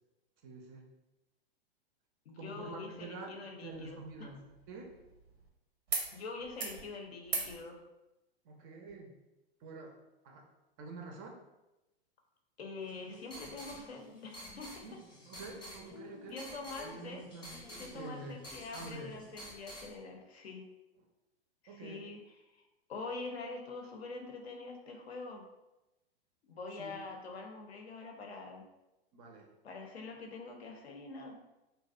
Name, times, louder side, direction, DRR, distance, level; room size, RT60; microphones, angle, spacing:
voice 1, 0.4-0.8 2.4-4.4 4.7-5.0 8.4-9.1 9.6-10.0 10.2-10.4 10.8-11.4 14.8-15.0 15.3-16.4 16.8-17.5 17.9-18.4 18.7-19.1 21.7-22.1 26.8-26.9 29.1-29.5, right 3 dB, 30° right, 2 dB, 0.3 m, -47 dB
voice 2, 2.3-4.3 6.1-7.8 12.6-15.0 16.3-17.2 17.8-20.7 21.6-22.6 22.9-25.4 26.5-28.6 29.6-31.4, left 3 dB, 80° left, 2 dB, 0.6 m, -45 dB
sound 1, 3.7-5.5 5.9-6.1 6.4-6.8 7.2-7.5 8.9-9.0, right 4 dB, 85° right, 0.6 m, -40 dB
sound 2, 12.8-19.9, left 1 dB, 15° left, 0.6 m, -50 dB
2.5 x 2.1 x 2.3 m, 0.98 s
hypercardioid pair, 105°, 31 cm